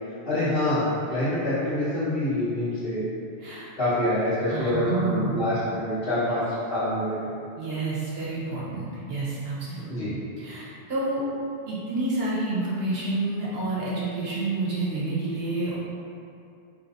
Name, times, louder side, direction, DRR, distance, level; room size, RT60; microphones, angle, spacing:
voice 1, 0.2-3.0 3.8-7.1 9.9-10.1, left 1 dB, 55° left, -16 dB, 1.4 m, -26 dB
voice 2, 3.4-3.7 4.5-5.5 7.6-11.2 11.7-15.8, right 2 dB, 65° right, -7 dB, 1.1 m, -29 dB
4.4 x 3.1 x 2.6 m, 2.6 s
omnidirectional pair, 1.2 m